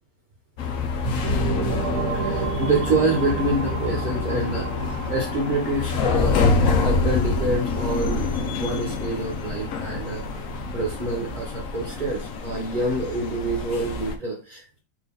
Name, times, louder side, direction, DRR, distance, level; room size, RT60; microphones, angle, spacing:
sound 1, 0.6-14.2, left 4 dB, 60° left, 1.0 m, -26 dB
sound 2, 1.0-10.6, right 6 dB, 70° right, 1.0 m, -33 dB
voice 1, 1.9-6.5 6.8-10.2 10.7-14.8, right 2 dB, 30° right, -2 dB, 1.1 m, -27 dB
4.2 x 3.2 x 3.6 m, 0.34 s
omnidirectional pair, 1.9 m